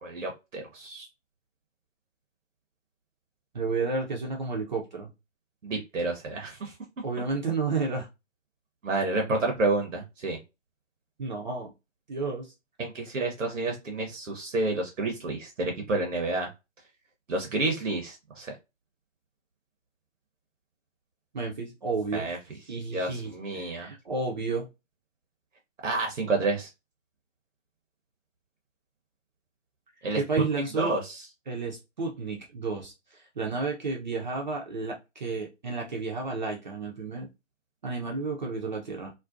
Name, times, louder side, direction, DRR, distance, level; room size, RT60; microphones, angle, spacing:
voice 1, 0.0-1.1 5.6-6.7 8.8-10.4 12.8-16.5 17.3-18.5 22.1-22.4 22.9-23.9 25.8-26.7 30.0-30.4 30.8-31.2, right 2 dB, 80° right, 2 dB, 0.7 m, -29 dB
voice 2, 3.5-5.1 7.0-8.1 11.2-11.7 12.1-12.5 21.3-22.3 22.7-24.7 30.1-31.0 31.5-37.3 37.8-39.1, right 4 dB, 40° right, 0 dB, 0.4 m, -31 dB
2.4 x 2.1 x 2.4 m, 0.25 s
figure-of-eight pair, 135°, 37 cm